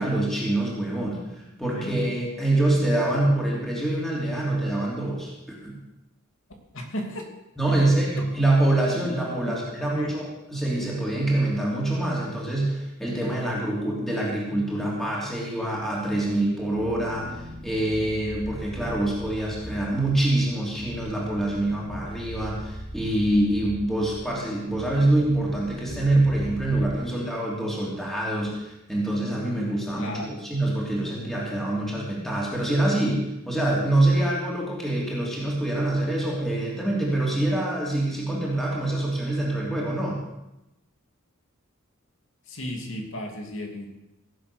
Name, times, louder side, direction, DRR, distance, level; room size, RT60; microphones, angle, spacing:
voice 1, 0.0-5.8 7.6-40.2, right 1 dB, ahead, -5 dB, 3.1 m, -25 dB
voice 2, 1.6-2.0 6.7-7.3 7.7-7.9 9.3-10.1 30.0-30.4 42.5-43.9, equal, 65° left, 2 dB, 2.6 m, -35 dB
sound 1, 16.7-27.0, equal, 30° right, 3.0 m, -40 dB
16.5 x 7.8 x 6.9 m, 0.92 s
head